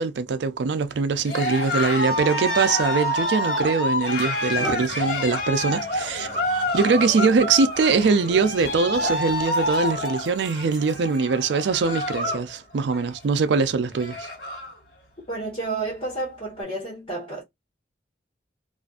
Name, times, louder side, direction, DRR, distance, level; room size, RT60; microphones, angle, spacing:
voice 1, 0.0-6.3 6.7-14.3, right 4 dB, 75° right, 0.4 m, -22 dB
Cheering, 1.2-12.5 12.8-13.2 13.6-13.7 13.9-14.7, left 1 dB, 65° left, 1.5 m, -27 dB
sound 1, 3.2-3.4 4.0-11.4, right 1 dB, ahead, 0.6 m, -41 dB
voice 2, 15.3-17.4, right 3 dB, 35° left, 1.2 m, -30 dB
2.5 x 2.4 x 2.3 m
head